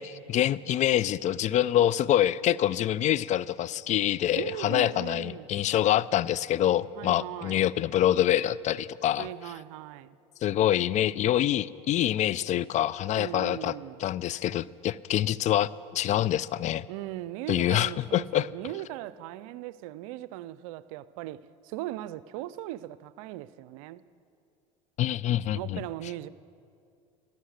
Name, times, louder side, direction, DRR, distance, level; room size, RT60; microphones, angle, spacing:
voice 1, 0.0-9.3 10.4-13.7 14.0-16.8 17.5-18.5 25.0-25.8, left 12 dB, 45° left, 0.5 m, -26 dB
voice 2, 4.3-5.5 6.9-7.7 9.1-10.2 13.2-14.0 16.9-24.0 25.5-26.3, right 15 dB, 75° right, 0.5 m, -39 dB
16.0 x 14.0 x 6.5 m
hypercardioid pair, 90°, 18 cm